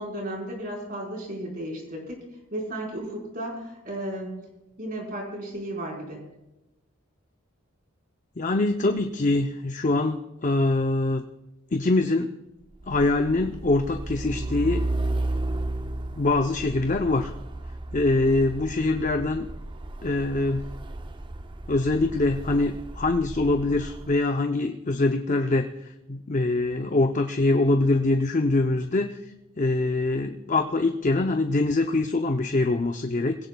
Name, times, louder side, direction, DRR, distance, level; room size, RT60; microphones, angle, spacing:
voice 1, 0.0-2.3 2.5-4.5 4.8-6.2, right 1 dB, 45° right, -1 dB, 4.5 m, -34 dB
voice 2, 8.4-11.2 11.7-12.3 12.9-14.8 16.1-17.3 17.9-19.5 20.0-20.6 21.7-29.2 29.6-33.4, left 2 dB, 40° left, 5 dB, 0.6 m, -24 dB
Truck, 12.7-24.2, right 2 dB, 25° right, 0.5 m, -33 dB
21.5 x 17.0 x 2.3 m, 0.97 s
head